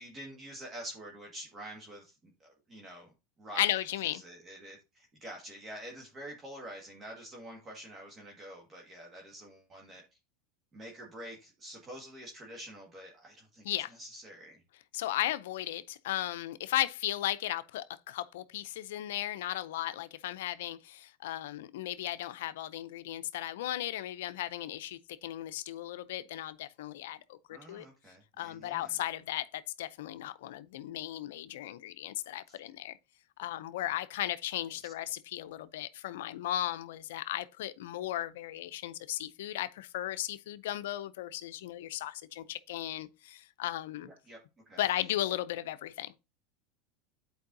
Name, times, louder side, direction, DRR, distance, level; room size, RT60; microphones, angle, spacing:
voice 1, 0.0-3.1 3.4-10.0 10.7-14.6 27.5-29.0 32.5-32.6 44.0-44.4 44.6-44.8, right 1 dB, 25° right, 1.8 m, -47 dB
voice 2, 3.6-4.2 13.6-13.9 14.9-27.9 28.4-33.0 33.4-44.1 44.8-46.2, left 13 dB, 80° left, 0.5 m, -36 dB
10.5 x 4.6 x 2.7 m
supercardioid pair, 120°, 0 cm